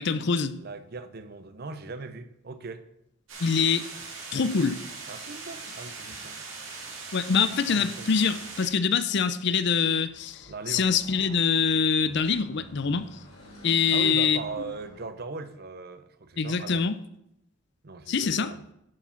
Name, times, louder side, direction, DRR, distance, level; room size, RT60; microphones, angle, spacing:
voice 1, 0.0-0.6 3.4-3.9 4.3-4.8 7.1-13.1 13.6-14.4 16.4-16.9 18.1-18.5, left 6 dB, 60° left, 0.5 m, -24 dB
voice 2, 0.5-2.8 5.1-6.4 7.7-8.4 10.5-10.9 13.9-16.8 17.8-18.6, right 3 dB, 50° right, 0.7 m, -39 dB
sound 1, 3.3-8.7, right 4 dB, 80° right, 2.5 m, -40 dB
Car passing by / Traffic noise roadway noise, 9.9-15.1, left 1 dB, 90° left, 4.0 m, -50 dB
11.0 x 4.8 x 5.8 m
head